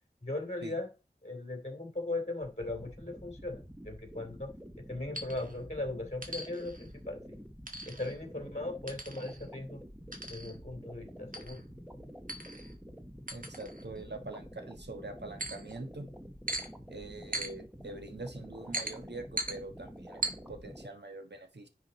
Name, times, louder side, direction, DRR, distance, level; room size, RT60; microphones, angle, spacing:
voice 1, 0.2-0.9 1.2-4.5 4.9-7.4 7.9-9.8 10.3-11.6, left 2 dB, 40° left, 3 dB, 2.9 m, -38 dB
sound 1, 2.4-20.9, equal, 5° right, 1.2 m, -49 dB
sound 2, 5.1-5.5 6.2-6.9 7.7-8.2 8.9-9.5 10.1-10.6 11.3-11.6 12.3-12.7 13.3-14.0 15.4-15.8 16.5-16.7 17.3-17.5 18.7-19.0 19.4-19.6 20.2-20.3, right 2 dB, 50° right, 1.7 m, -38 dB
voice 2, 13.3-16.1 16.9-21.7, right 2 dB, 70° right, 6 dB, 1.3 m, -44 dB
10.0 x 5.0 x 4.1 m, 0.31 s
wide cardioid pair, 40°, 18 cm